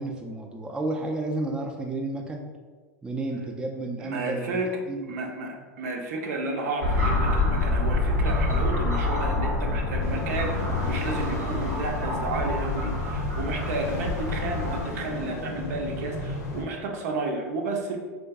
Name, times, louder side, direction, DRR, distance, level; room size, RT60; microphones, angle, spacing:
voice 1, 0.0-2.5 3.0-5.2, right 2 dB, 10° right, 1 dB, 0.3 m, -32 dB
voice 2, 4.0-4.8 5.1-18.0, right 2 dB, 70° right, 2 dB, 0.5 m, -32 dB
sound 1, 6.8-14.8, left 2 dB, 85° right, 0.9 m, -26 dB
sound 2, 10.0-16.6, left 1 dB, 75° left, 0.6 m, -34 dB
3.6 x 2.5 x 2.3 m, 1.4 s
hypercardioid pair, 100°, 9 cm